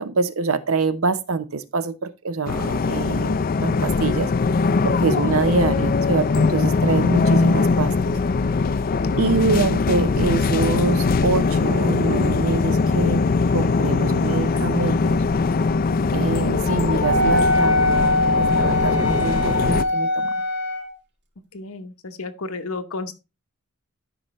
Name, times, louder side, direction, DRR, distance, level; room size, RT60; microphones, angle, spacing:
voice 1, 0.0-4.3 4.8-8.1 9.2-15.2 16.1-20.3, right 4 dB, 70° right, 0.8 m, -25 dB
sound 1, 2.5-19.8, left 4 dB, 45° left, 0.4 m, -21 dB
Wind instrument woodwind instrument, 17.0-20.9, left 1 dB, 55° right, 1.9 m, -21 dB
voice 2, 21.5-23.1, left 3 dB, 70° left, 1.0 m, -32 dB
12.0 x 5.5 x 3.1 m
head